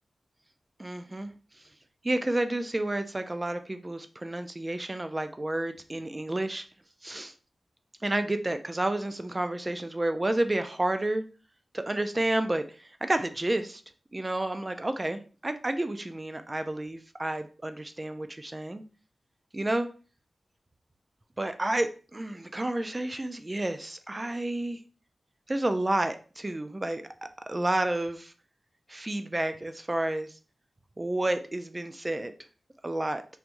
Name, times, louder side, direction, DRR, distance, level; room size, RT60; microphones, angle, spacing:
voice 1, 0.8-1.3 2.0-6.7 7.0-7.3 8.0-11.2 11.7-13.8 14.1-18.8 19.5-19.9 21.4-24.8 25.5-27.0 27.5-28.3 28.9-30.4 31.0-32.3 32.8-33.2, right 1 dB, 20° right, 8 dB, 0.3 m, -30 dB
3.5 x 3.0 x 2.5 m, 0.37 s
wide cardioid pair, 135°, 0 cm